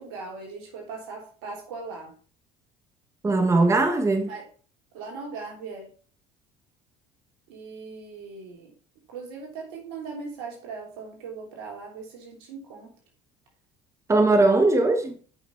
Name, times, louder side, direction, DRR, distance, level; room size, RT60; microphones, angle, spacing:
voice 1, 0.0-2.1 4.3-4.4 4.9-5.9 7.5-8.7 9.1-12.9, right 4 dB, 85° right, 3.3 m, -39 dB
voice 2, 3.2-4.3 14.1-15.1, right 2 dB, 20° right, 1.4 m, -20 dB
8.8 x 5.7 x 4.6 m
supercardioid pair, 85°, 13 cm